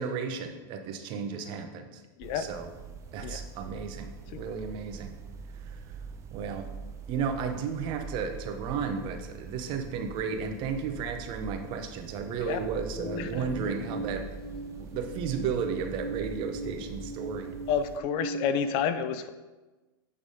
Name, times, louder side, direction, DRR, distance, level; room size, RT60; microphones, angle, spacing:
voice 1, 0.0-2.0 2.3-2.7 3.1-5.1 5.7-5.8 6.3-6.7 7.1-14.3 14.8-17.6, right 6 dB, 40° right, 6 dB, 0.8 m, -33 dB
sound 1, 2.2-18.0, right 5 dB, 25° right, 0.4 m, -44 dB
sound 2, 12.9-18.5, right 2 dB, 70° left, 1.2 m, -39 dB
voice 2, 17.7-19.3, left 7 dB, 45° left, 11 dB, 0.4 m, -29 dB
8.5 x 3.6 x 5.0 m, 1.2 s
supercardioid pair, 140°, 13 cm